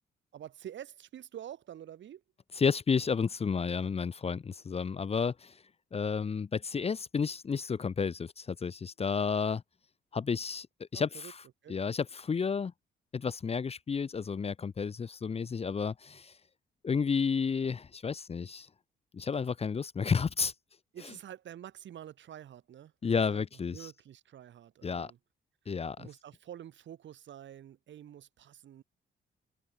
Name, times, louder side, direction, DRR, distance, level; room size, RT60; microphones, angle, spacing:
voice 1, 0.3-2.2 10.9-11.3 11.6-11.7 20.9-23.4 23.7-25.2 26.0-28.8, right 10 dB, 70° right, 5.1 m, -48 dB
voice 2, 2.5-5.6 5.9-9.6 10.1-11.4 11.7-12.7 13.1-16.3 16.8-18.7 19.1-20.5 23.0-23.9 24.8-25.1 25.7-26.1, left 5 dB, 30° left, 0.7 m, -31 dB
cardioid pair, 90°, 20 cm